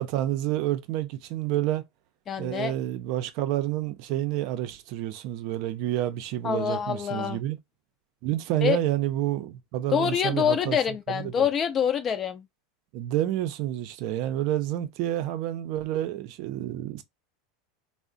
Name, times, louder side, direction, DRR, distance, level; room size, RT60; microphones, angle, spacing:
voice 1, 0.0-1.8 2.4-7.6 8.2-10.8 11.1-11.5 12.9-17.0, right 13 dB, 60° right, 0.5 m, -29 dB
voice 2, 2.3-2.7 6.4-7.4 8.6-8.8 9.9-12.5, left 8 dB, 30° left, 0.5 m, -26 dB
2.4 x 2.0 x 3.7 m
supercardioid pair, 125°, 0 cm